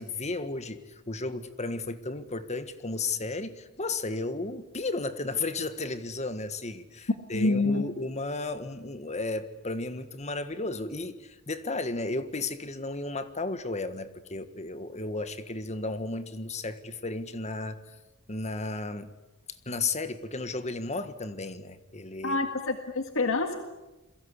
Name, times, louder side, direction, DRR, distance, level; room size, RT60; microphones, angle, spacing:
voice 1, 0.0-17.8 18.3-19.1 19.6-22.4, left 3 dB, 30° left, 11 dB, 1.6 m, -34 dB
voice 2, 7.3-7.8 22.2-23.6, left 3 dB, 65° left, 6 dB, 1.9 m, -27 dB
29.0 x 22.5 x 8.3 m, 1.1 s
head